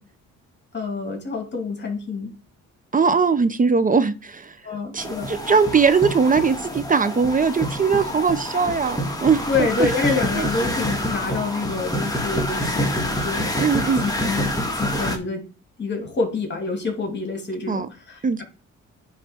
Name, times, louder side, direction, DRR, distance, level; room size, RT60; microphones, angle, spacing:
voice 1, 0.7-2.3 4.6-5.3 9.5-13.5 14.0-14.5 14.8-15.4 15.8-18.4, left 4 dB, 35° left, 4 dB, 2.6 m, -27 dB
voice 2, 2.9-4.6 4.9-9.9 10.4-10.5 13.6-14.0 17.7-17.9 18.2-18.4, right 5 dB, 25° right, 13 dB, 0.6 m, -20 dB
sound 1, 5.0-15.2, left 1 dB, 10° left, 1.6 m, -27 dB
9.8 x 3.3 x 4.4 m, 0.34 s
cardioid pair, 90°, 30 cm